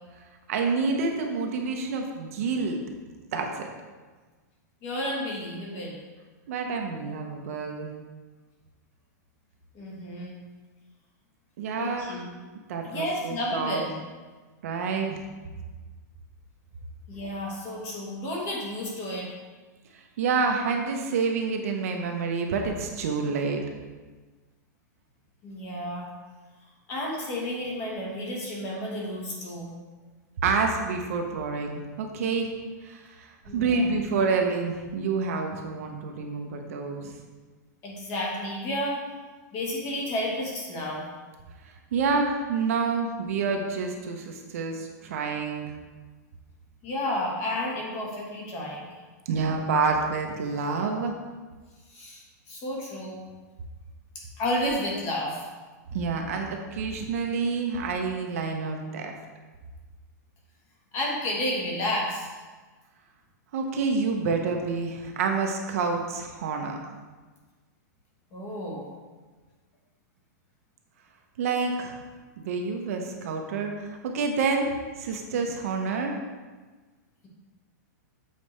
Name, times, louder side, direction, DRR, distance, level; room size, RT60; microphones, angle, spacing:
voice 1, 0.5-2.8 3.1-3.7 6.5-7.9 11.6-12.2 12.7-13.8 14.6-15.2 19.9-23.6 30.4-32.5 32.8-37.1 41.6-45.7 49.3-51.1 55.9-59.1 63.5-66.8 71.4-72.0 72.4-76.2, right 4 dB, 50° right, 3 dB, 0.7 m, -28 dB
voice 2, 4.8-6.0 9.7-10.4 11.8-12.3 12.8-13.9 17.1-19.3 25.4-26.1 26.9-29.7 33.4-33.9 37.8-39.0 39.5-41.0 46.8-49.0 51.9-53.2 54.4-55.5 60.9-62.3 68.3-68.9, left 1 dB, 25° left, -2 dB, 1.2 m, -31 dB
7.3 x 4.1 x 3.2 m, 1.3 s
supercardioid pair, 170°, 10 cm